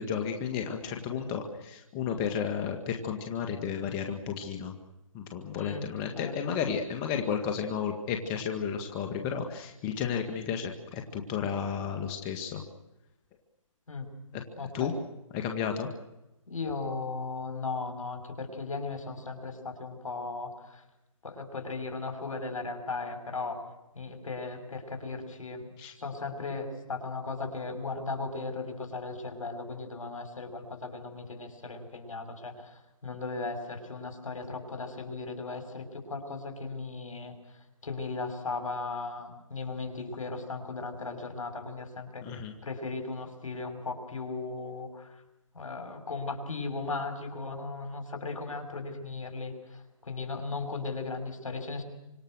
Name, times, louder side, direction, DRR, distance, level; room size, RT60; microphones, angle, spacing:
voice 1, 0.0-4.8 5.1-12.6 14.6-14.9 15.3-15.9 25.8-25.9 42.2-42.5, left 7 dB, 20° left, 4 dB, 2.2 m, -32 dB
voice 2, 5.6-5.9 6.1-6.6 13.9-14.1 14.6-15.0 16.5-20.8 21.2-23.6 23.9-25.7 26.0-37.3 37.8-45.2 45.5-51.8, left 3 dB, 75° left, 5 dB, 6.3 m, -37 dB
27.5 x 26.0 x 6.5 m, 0.94 s
hypercardioid pair, 150°, 17 cm